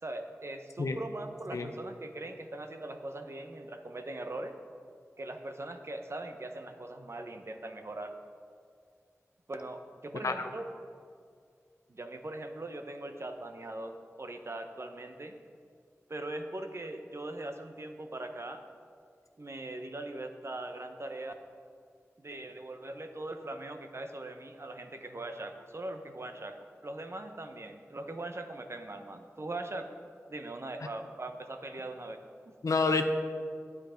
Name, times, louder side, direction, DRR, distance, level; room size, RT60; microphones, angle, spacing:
voice 1, 0.0-4.5 5.2-8.1 9.5-10.6 11.9-15.4 16.1-18.6 19.4-21.3 22.2-29.9 30.3-32.2 32.5-32.6, right 2 dB, 55° right, 6 dB, 0.9 m, -41 dB
voice 2, 32.6-33.0, left 4 dB, 90° left, 7 dB, 0.7 m, -28 dB
9.8 x 9.5 x 5.1 m, 2.2 s
wide cardioid pair, 45°, 5 cm